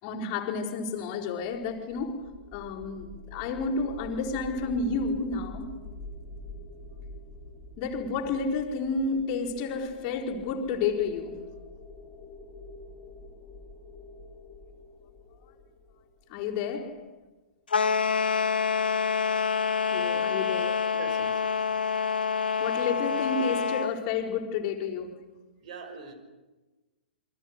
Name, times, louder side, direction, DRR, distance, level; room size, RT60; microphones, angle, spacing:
voice 1, 0.0-5.8 7.8-11.4 16.3-17.0 19.9-20.9 22.6-25.2, left 4 dB, 30° left, 4.4 m, -31 dB
sound 1, 1.5-16.7, left 2 dB, 15° left, 4.2 m, -46 dB
sound 2, 17.7-23.9, left 6 dB, 65° left, 2.0 m, -27 dB
voice 2, 20.9-22.6 25.6-26.1, right 5 dB, 45° right, 5.9 m, -45 dB
28.0 x 24.5 x 6.6 m
figure-of-eight pair, 110°, 6 cm